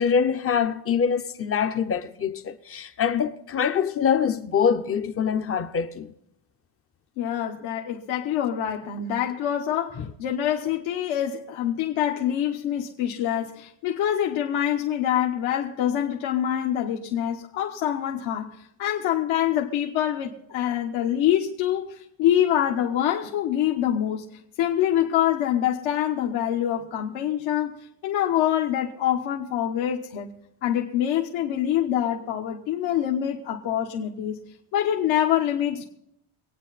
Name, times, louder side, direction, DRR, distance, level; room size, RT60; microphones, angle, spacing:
voice 1, 0.0-6.1 10.0-10.1, left 7 dB, 30° left, 0.6 m, -24 dB
voice 2, 7.2-24.3 24.6-30.3 30.6-34.4 34.7-35.8, left 11 dB, 70° left, 1.2 m, -25 dB
24.5 x 9.3 x 4.1 m
cardioid pair, 155°, 49 cm